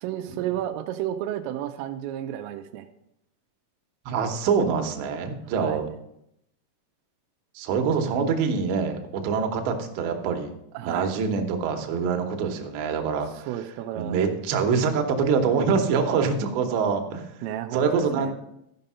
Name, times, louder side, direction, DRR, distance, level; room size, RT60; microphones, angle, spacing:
voice 1, 0.0-2.9 5.5-5.8 8.1-8.2 10.7-11.2 13.5-14.2 17.4-18.3, right 12 dB, 90° right, 7 dB, 3.1 m, -32 dB
voice 2, 4.1-5.9 7.6-10.5 10.8-13.5 14.0-17.3 17.7-18.3, right 5 dB, 75° right, 4 dB, 3.0 m, -25 dB
13.5 x 5.4 x 5.5 m, 0.79 s
omnidirectional pair, 5.7 m